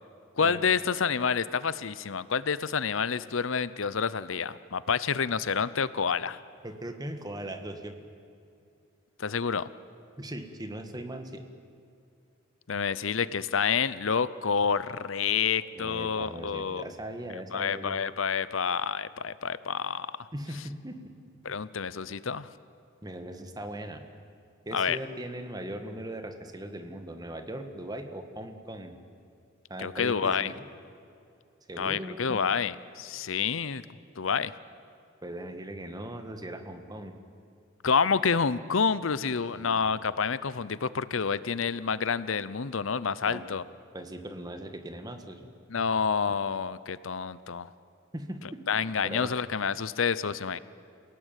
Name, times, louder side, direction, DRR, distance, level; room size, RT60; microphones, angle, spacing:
voice 1, 0.3-6.4 9.2-9.7 12.7-16.9 17.5-20.3 21.4-22.5 24.7-25.0 29.8-30.5 31.8-33.8 34.2-34.5 37.8-43.6 45.7-47.7 48.7-50.6, left 6 dB, 80° left, 16 dB, 0.7 m, -28 dB
voice 2, 6.6-7.9 10.2-11.4 15.7-18.0 20.3-21.1 23.0-24.0 24.6-29.0 29.7-30.6 31.7-32.4 35.2-37.1 39.5-39.8 43.2-43.4 43.9-45.5 48.1-48.6 49.0-49.3, right 1 dB, 20° right, 6 dB, 1.8 m, -39 dB
28.0 x 17.5 x 9.2 m, 2.5 s
head